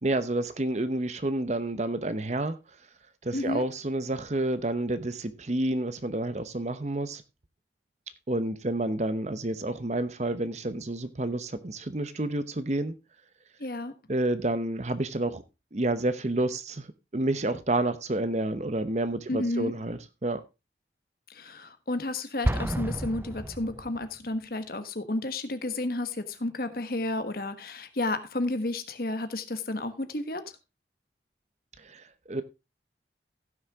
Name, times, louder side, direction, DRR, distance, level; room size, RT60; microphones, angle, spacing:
voice 1, 0.0-2.6 3.2-7.2 8.3-13.0 14.1-15.4 15.7-20.4 31.8-32.4, right 1 dB, 40° right, 0.8 m, -29 dB
voice 2, 3.3-3.6 13.6-13.9 19.3-19.7 21.3-30.5, left 2 dB, 55° left, 1.3 m, -32 dB
Explosion, 22.4-24.3, right 1 dB, 10° right, 0.5 m, -30 dB
15.5 x 6.4 x 3.6 m
head